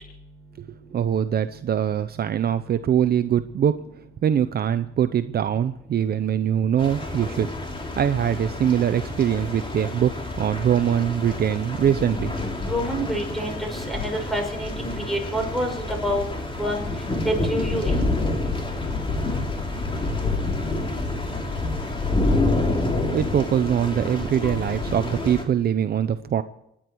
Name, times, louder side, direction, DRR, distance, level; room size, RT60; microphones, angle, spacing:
voice 1, 0.9-3.8 4.2-7.5 8.0-12.3 22.9-26.4, right 9 dB, 50° right, 11 dB, 0.7 m, -23 dB
sound 1, 6.8-25.4, left 2 dB, 25° left, 3.2 m, -28 dB
voice 2, 12.6-16.2 16.6-16.9 17.3-18.1, equal, ahead, 2 dB, 5.9 m, -27 dB
26.5 x 10.0 x 4.7 m, 0.78 s
cardioid pair, 90°, 20 cm